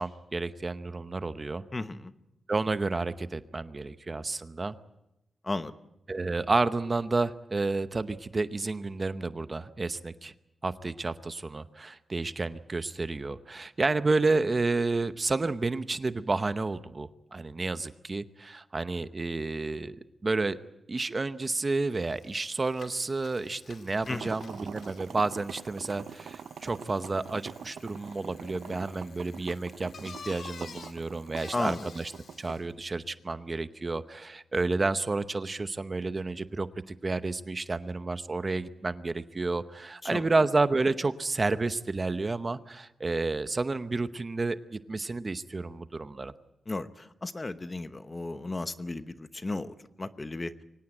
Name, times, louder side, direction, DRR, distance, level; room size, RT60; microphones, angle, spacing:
voice 1, 0.0-1.6 2.5-4.7 6.1-10.3 10.6-20.6 20.9-32.1 32.4-46.3, right 3 dB, 30° right, 12 dB, 0.8 m, -30 dB
voice 2, 1.7-2.1 5.4-5.7 24.1-24.3 31.5-31.9 40.0-40.3 46.7-50.5, left 2 dB, 25° left, 11 dB, 0.9 m, -34 dB
Bicycle, 21.6-21.7 21.9-32.7, left 5 dB, 65° left, 2.3 m, -51 dB
sound 1, 24.1-32.6, right 7 dB, 90° right, 0.8 m, -44 dB
24.0 x 18.5 x 9.0 m, 0.89 s
wide cardioid pair, 135°, 0 cm